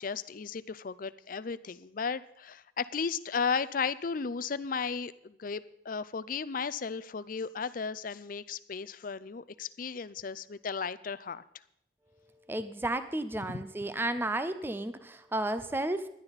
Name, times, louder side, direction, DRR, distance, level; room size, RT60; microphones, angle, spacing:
voice 1, 0.0-11.4 13.5-13.6, left 5 dB, 45° left, 16 dB, 0.5 m, -35 dB
voice 2, 12.5-16.1, right 1 dB, 10° right, 11 dB, 0.5 m, -32 dB
16.5 x 11.5 x 4.1 m, 0.76 s
head